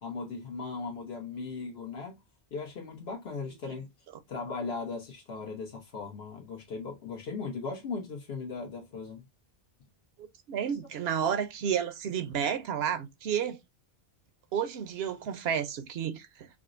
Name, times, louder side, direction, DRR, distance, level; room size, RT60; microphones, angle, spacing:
voice 1, 0.0-2.2 2.5-3.9 4.3-9.2, left 4 dB, 75° left, 1.0 m, -38 dB
voice 2, 10.2-13.6 14.5-16.6, right 8 dB, 80° right, 0.8 m, -31 dB
4.7 x 2.0 x 2.5 m
omnidirectional pair, 1.0 m